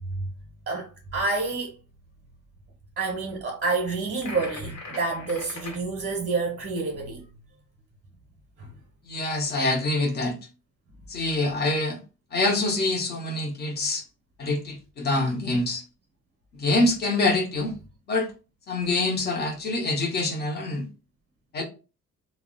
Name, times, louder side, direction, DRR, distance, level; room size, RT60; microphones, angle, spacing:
voice 1, 0.7-1.7 3.0-7.2 8.6-8.7, right 3 dB, 30° right, 0.7 m, -28 dB
sound 1, 4.2-5.8, left 3 dB, 65° left, 1.0 m, -40 dB
voice 2, 9.0-10.4 11.1-12.0 12.3-14.0 14.4-15.8 16.5-17.7 18.1-18.3 18.7-20.9 21.5-21.6, left 2 dB, 30° left, 0.7 m, -25 dB
2.2 x 2.0 x 3.6 m
cardioid pair, 175°, 31 cm